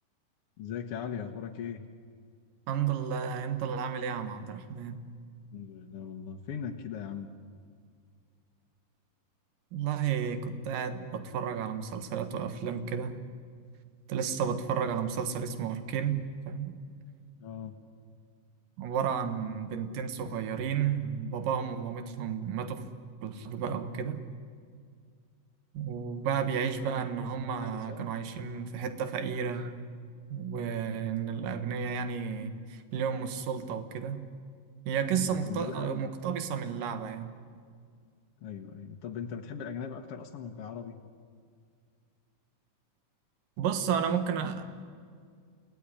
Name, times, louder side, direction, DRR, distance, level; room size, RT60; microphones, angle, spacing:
voice 1, 0.6-1.8 5.5-7.3 17.4-17.8 26.6-28.1 35.1-36.0 38.4-41.0, left 7 dB, 60° left, 3 dB, 1.7 m, -40 dB
voice 2, 2.7-5.0 9.7-13.1 14.1-16.8 18.8-22.8 23.2-24.2 25.7-29.7 30.3-34.2 34.9-37.3 43.6-44.6, right 7 dB, 75° right, 9 dB, 3.1 m, -32 dB
29.0 x 18.0 x 10.0 m, 2.1 s
omnidirectional pair, 3.9 m